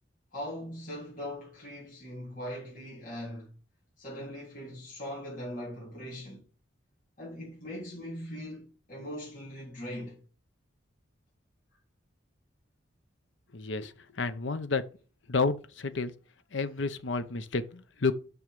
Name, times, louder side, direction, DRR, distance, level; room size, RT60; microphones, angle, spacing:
voice 1, 0.3-3.5 4.0-6.4 7.2-10.2 16.6-16.8, equal, 45° left, 3.5 m, -40 dB
voice 2, 13.5-13.9 14.2-14.8 15.3-16.1 16.5-18.1, left 4 dB, 75° left, 0.8 m, -30 dB
6.4 x 6.0 x 5.3 m
head